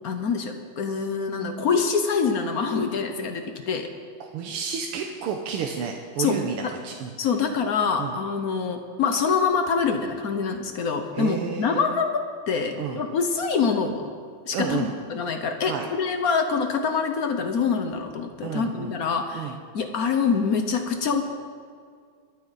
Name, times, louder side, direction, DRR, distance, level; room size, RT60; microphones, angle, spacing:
voice 1, 0.0-3.9 6.2-6.7 7.2-12.2 12.5-14.1 14.5-21.2, left 5 dB, 60° left, 6 dB, 1.0 m, -25 dB
voice 2, 4.2-7.1 8.0-8.2 11.1-12.0 12.8-13.0 14.5-14.9 15.6-15.9 18.4-18.9 19.3-19.6, right 7 dB, 90° right, 2 dB, 1.8 m, -31 dB
22.5 x 8.7 x 4.1 m, 2.1 s
omnidirectional pair, 2.4 m